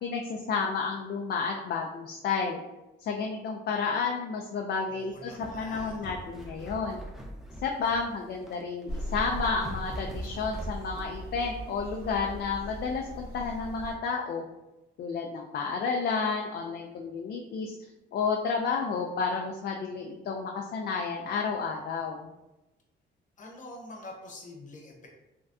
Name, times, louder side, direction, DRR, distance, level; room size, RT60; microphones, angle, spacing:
voice 1, 0.0-2.6 3.0-7.0 7.6-14.4 15.0-17.7 18.1-22.3, left 5 dB, 55° left, 1 dB, 0.4 m, -31 dB
voice 2, 4.9-6.1 23.4-25.1, left 2 dB, 40° left, -1 dB, 0.9 m, -45 dB
sound 1, 5.1-11.2, right 1 dB, ahead, 0.5 m, -42 dB
sound 2, 8.9-13.9, right 1 dB, 50° right, 1.3 m, -39 dB
3.5 x 2.2 x 2.6 m, 0.99 s
cardioid pair, 90°, 20 cm